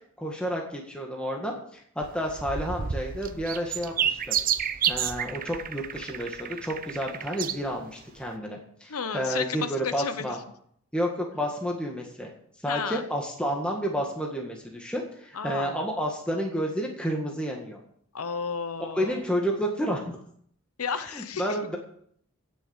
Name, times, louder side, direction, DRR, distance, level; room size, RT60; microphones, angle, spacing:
voice 1, 0.2-4.3 4.9-10.4 10.9-12.3 12.6-17.8 18.9-20.2 21.1-21.8, equal, 5° left, 0 dB, 1.8 m, -30 dB
sound 1, 2.0-7.6 8.2-8.3, right 8 dB, 40° right, 0.7 m, -30 dB
voice 2, 8.9-10.4 12.6-13.0 15.3-15.8 18.1-19.1 20.8-21.6, left 6 dB, 80° left, 11 dB, 0.9 m, -32 dB
16.5 x 6.8 x 7.1 m, 0.65 s
head